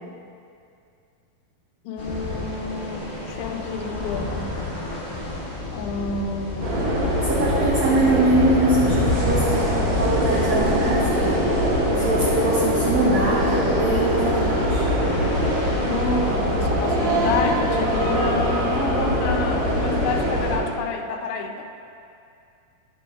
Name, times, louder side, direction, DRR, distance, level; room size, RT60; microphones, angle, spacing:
voice 1, 1.9-4.6 5.7-6.9 15.9-21.7, left 4 dB, 85° left, 5 dB, 2.6 m, -29 dB
sound 1, 2.0-17.4, left 2 dB, 60° left, 0.9 m, -32 dB
sound 2, 6.6-20.6, equal, 50° right, 1.5 m, -22 dB
voice 2, 7.2-11.4 11.9-14.8, right 1 dB, 85° right, -5 dB, 1.6 m, -23 dB
10.5 x 8.9 x 2.3 m, 2.5 s
omnidirectional pair, 4.6 m